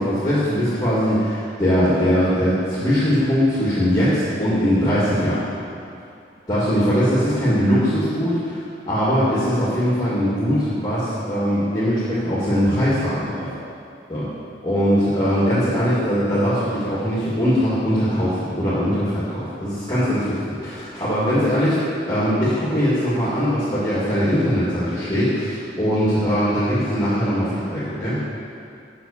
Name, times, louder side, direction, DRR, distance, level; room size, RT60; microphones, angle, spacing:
voice 1, 0.0-5.4 6.5-8.6 8.9-13.5 14.1-14.2 14.6-21.8 22.1-28.2, equal, 25° left, -11 dB, 2.1 m, -21 dB
7.8 x 6.0 x 7.1 m, 2.5 s
head